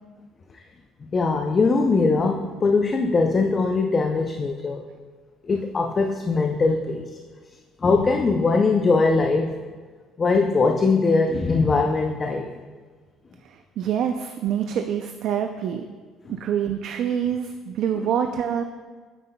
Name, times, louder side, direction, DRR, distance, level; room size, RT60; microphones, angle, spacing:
voice 1, 1.1-4.8 5.4-7.1 7.8-9.5 10.2-12.5, left 3 dB, 25° left, 3 dB, 0.4 m, -21 dB
voice 2, 13.4-15.9 16.3-18.6, right 8 dB, 60° right, 6 dB, 0.3 m, -26 dB
9.1 x 7.8 x 2.2 m, 1.5 s
cardioid pair, 130°, 0 cm